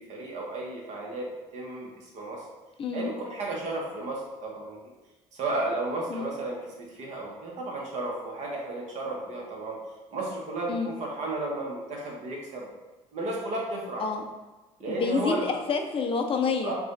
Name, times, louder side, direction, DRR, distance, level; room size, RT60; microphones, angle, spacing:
voice 1, 0.0-2.5 2.9-4.8 5.3-9.8 10.1-12.7 13.1-14.0 14.8-15.6 16.6-16.7, right 2 dB, 60° right, -2 dB, 1.1 m, -33 dB
voice 2, 2.8-3.1 6.1-6.3 10.7-10.9 14.0-14.2 14.9-16.8, left 5 dB, 45° left, 4 dB, 0.5 m, -28 dB
4.8 x 2.3 x 2.6 m, 1.2 s
cardioid pair, 90°, 14 cm